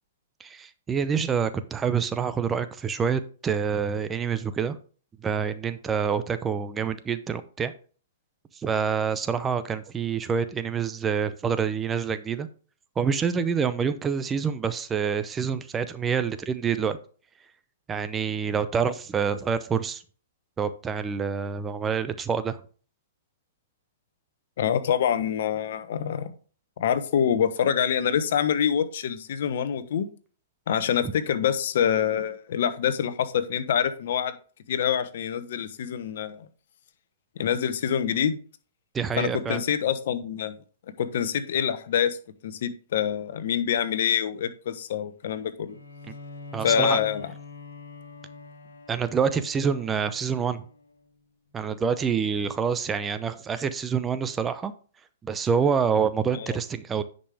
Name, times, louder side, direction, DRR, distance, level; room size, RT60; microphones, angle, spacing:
voice 1, 0.4-4.8 5.2-7.7 8.6-12.5 13.0-17.0 17.9-20.0 20.6-22.6 31.0-31.1 38.9-39.6 46.5-47.0 48.9-50.7 51.5-54.7 55.2-57.0, right 6 dB, 15° right, 0.6 m, -27 dB
voice 2, 24.6-26.3 26.8-30.1 30.7-34.3 34.7-36.5 37.4-38.4 39.2-40.5 41.0-42.2 42.4-45.8 46.6-47.3 56.3-56.6, left 8 dB, 65° left, 1.0 m, -26 dB
Bowed string instrument, 45.7-51.1, left 3 dB, 85° left, 1.9 m, -44 dB
10.0 x 5.3 x 3.5 m
hypercardioid pair, 125°, 0 cm